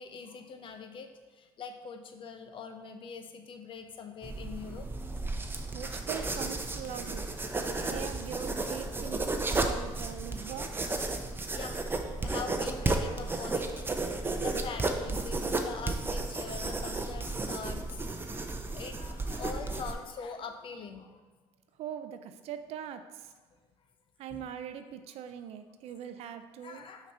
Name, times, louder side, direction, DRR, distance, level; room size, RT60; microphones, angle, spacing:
voice 1, 0.0-5.0 6.8-7.0 7.8-8.0 9.7-9.8 11.5-18.4 18.7-21.2 24.3-24.4 26.6-27.1, left 5 dB, 50° left, 6 dB, 0.7 m, -43 dB
sound 1, 4.2-19.9, right 2 dB, 20° right, 0.6 m, -33 dB
voice 2, 5.7-7.3 7.8-10.7 21.8-23.3 24.2-26.8, right 9 dB, 70° right, 9 dB, 0.5 m, -41 dB
5.9 x 2.9 x 5.5 m, 1.3 s
supercardioid pair, 75°, 11 cm